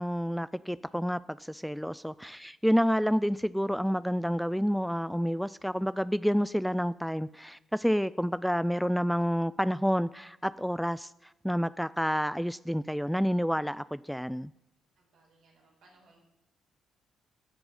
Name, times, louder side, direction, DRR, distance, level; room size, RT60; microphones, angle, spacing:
voice 1, 0.0-14.5, equal, ahead, 18 dB, 0.3 m, -29 dB
voice 2, 14.9-16.2, right 2 dB, 65° right, -2 dB, 5.0 m, -63 dB
16.0 x 6.9 x 5.5 m, 0.91 s
hypercardioid pair, 45°, 0 cm